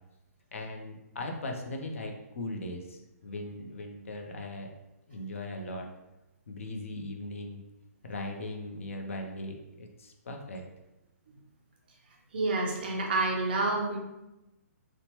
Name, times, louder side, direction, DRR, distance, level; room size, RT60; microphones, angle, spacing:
voice 1, 0.5-4.7 5.1-5.9 6.5-7.6 8.0-10.6, left 1 dB, 55° left, 2 dB, 0.4 m, -39 dB
voice 2, 12.3-14.0, right 2 dB, 35° right, 0 dB, 0.4 m, -28 dB
2.8 x 2.0 x 3.0 m, 0.96 s
hypercardioid pair, 175°, 9 cm